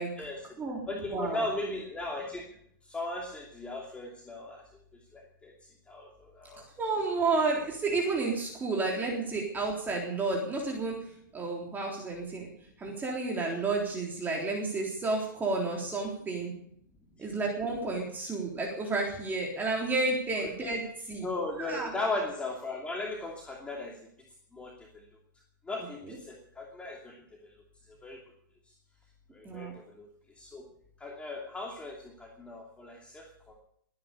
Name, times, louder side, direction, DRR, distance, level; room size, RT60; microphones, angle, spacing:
voice 1, 0.1-0.5 0.9-2.4 2.9-4.6 5.1-5.5 5.9-6.6 9.1-9.2 17.2-17.3 20.4-20.5 21.2-24.0 24.5-25.0 25.7-27.1 28.0-28.2 29.3-29.7 30.0-30.1 30.4-30.6 31.0-33.5, left 2 dB, 10° left, -1 dB, 2.7 m, -37 dB
voice 2, 1.1-1.5 6.8-11.0 11.3-12.5 12.8-16.5 17.2-21.3 21.6-21.9 29.4-29.7, right 3 dB, 15° right, -1 dB, 3.8 m, -31 dB
21.5 x 9.7 x 6.9 m, 0.70 s
hypercardioid pair, 125°, 11 cm